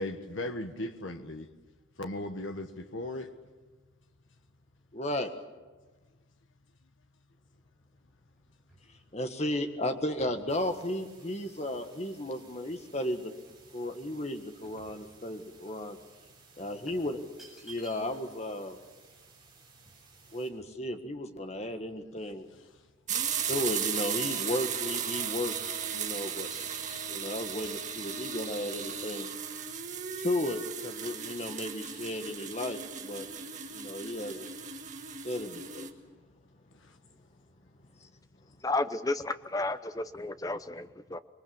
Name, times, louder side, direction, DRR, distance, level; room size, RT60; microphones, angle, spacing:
voice 1, 0.0-1.5 2.0-3.3, left 1 dB, 70° left, 1.4 m, -37 dB
voice 2, 4.9-5.3 9.1-13.3 13.7-16.0 16.6-17.2 17.6-18.8 20.3-22.5 23.5-25.5 25.9-26.5 27.1-29.3 30.2-33.3 33.7-34.5 35.2-35.9, left 1 dB, 30° left, 1.7 m, -34 dB
sound 1, 7.9-13.0 13.5-15.6 15.9-16.1 16.9-18.4 18.7-18.8 19.0-21.2 21.7-21.8 22.1-22.9 23.1-24.4 24.9-25.1 25.7-26.0 26.5-27.2, right 2 dB, ahead, 7.0 m, -56 dB
sound 2, 10.5-20.5, right 5 dB, 20° right, 6.9 m, -59 dB
sound 3, 23.1-35.9, right 7 dB, 35° right, 1.7 m, -36 dB
voice 3, 38.6-41.2, left 2 dB, 15° left, 0.8 m, -32 dB
26.0 x 22.0 x 7.3 m
head